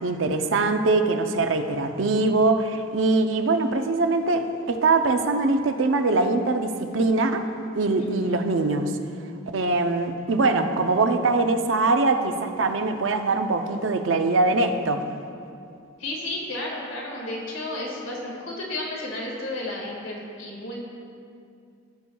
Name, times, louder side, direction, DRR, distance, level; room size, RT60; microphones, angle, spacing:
voice 1, 0.0-7.4 7.8-8.9 9.5-15.0, right 3 dB, 70° right, 7 dB, 0.6 m, -22 dB
voice 2, 16.0-20.8, left 2 dB, 90° left, -2 dB, 1.8 m, -32 dB
14.5 x 7.0 x 2.3 m, 2.4 s
head